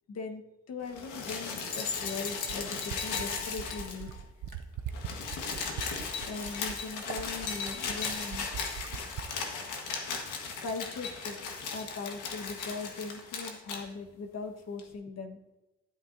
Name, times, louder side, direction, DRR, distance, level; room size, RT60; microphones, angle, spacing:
voice 1, 0.1-0.4 0.7-4.1 6.2-8.4 10.6-15.4, left 4 dB, 55° left, 4 dB, 1.4 m, -40 dB
sound 1, 0.9-4.2 4.5-4.6 4.8-13.8 14.8-14.9, left 5 dB, 85° left, 1.7 m, -36 dB
Fill (with liquid), 1.3-9.4 10.7-10.8, right 9 dB, 75° right, 0.7 m, -41 dB
13.5 x 8.8 x 2.7 m, 1.0 s
cardioid pair, 90°, 30 cm